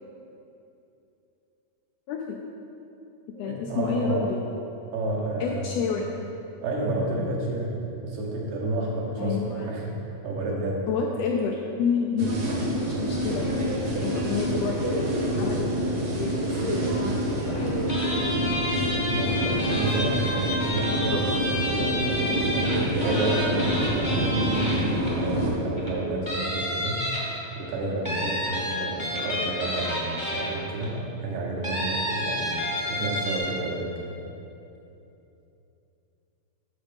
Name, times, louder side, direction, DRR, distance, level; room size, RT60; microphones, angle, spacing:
voice 1, 2.1-2.4 3.3-4.5 5.4-6.3 9.2-9.7 10.9-12.3 12.8-18.1 21.1-21.2, left 6 dB, 80° left, 0 dB, 1.5 m, -30 dB
voice 2, 3.4-4.2 4.9-5.8 6.6-10.0 10.2-10.9 19.1-24.7 25.2-27.1 27.6-32.6 32.9-33.9, right 2 dB, 80° right, -3 dB, 2.5 m, -30 dB
sound 1, 12.2-25.5, equal, 55° right, 1.4 m, -27 dB
sound 2, 17.9-25.3 25.8-25.9 26.3-27.5 28.0-30.8 31.6-33.4, left 1 dB, 15° left, 0.8 m, -30 dB
7.0 x 5.6 x 5.1 m, 2.8 s
omnidirectional pair, 3.3 m